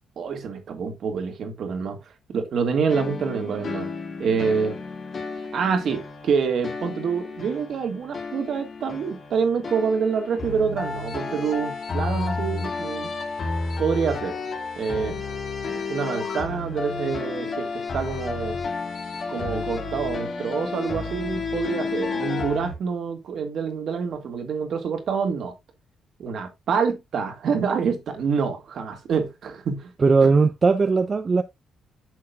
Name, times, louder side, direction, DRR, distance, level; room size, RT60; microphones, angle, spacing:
voice 1, 0.2-2.0 2.3-3.9 4.2-4.8 5.5-13.1 13.8-14.3 14.8-15.2 15.7-18.6 19.3-25.5 26.2-29.9 30.2-30.3, right 6 dB, 60° right, 2.0 m, -26 dB
sound 1, 2.9-22.8, left 4 dB, 50° left, 2.2 m, -31 dB
voice 2, 30.0-31.4, right 4 dB, 35° right, 0.6 m, -18 dB
9.7 x 6.4 x 2.4 m
cardioid pair, 90°, 0 cm